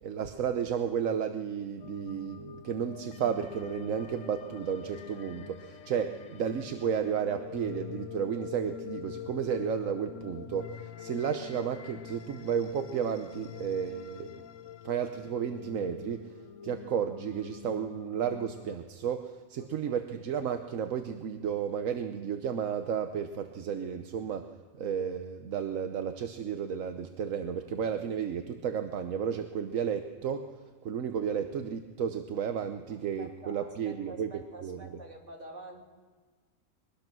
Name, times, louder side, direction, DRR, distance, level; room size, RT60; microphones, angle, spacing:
voice 1, 0.0-14.4 14.8-16.3 16.6-24.5 24.7-30.5 30.8-34.3 34.6-34.8, right 7 dB, 85° right, 7 dB, 1.3 m, -33 dB
sound 1, 1.8-18.8, left 9 dB, 75° left, 1.1 m, -45 dB
voice 2, 33.2-35.8, right 2 dB, 65° right, 1 dB, 3.2 m, -48 dB
22.5 x 20.5 x 6.1 m, 1.4 s
omnidirectional pair, 1.3 m